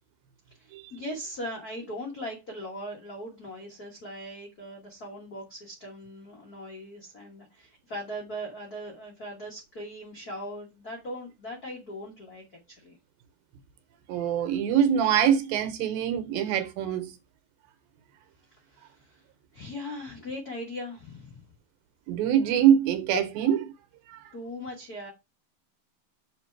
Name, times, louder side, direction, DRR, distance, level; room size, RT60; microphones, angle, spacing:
voice 1, 0.5-13.0 18.5-19.2 19.5-21.5 24.3-25.1, equal, 70° left, 0.8 m, -39 dB
voice 2, 14.1-17.2 22.1-23.7 24.1-24.3, right 9 dB, 80° right, 2.6 m, -24 dB
6.5 x 4.5 x 4.5 m
omnidirectional pair, 4.3 m